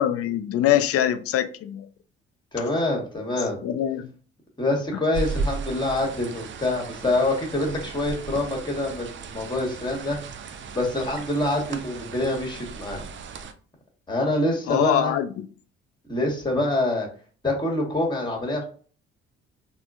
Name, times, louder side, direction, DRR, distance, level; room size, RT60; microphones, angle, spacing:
voice 1, 0.0-1.9 3.6-4.1 14.7-15.5, left 11 dB, 45° left, 0.4 m, -23 dB
voice 2, 2.5-3.6 4.6-10.2 10.7-13.0 14.1-15.2 16.1-17.1 17.4-18.6, left 2 dB, 15° left, 1.4 m, -26 dB
sound 1, 5.1-13.5, right 4 dB, 35° right, 0.4 m, -35 dB
3.5 x 2.2 x 2.4 m
hypercardioid pair, 45°, 32 cm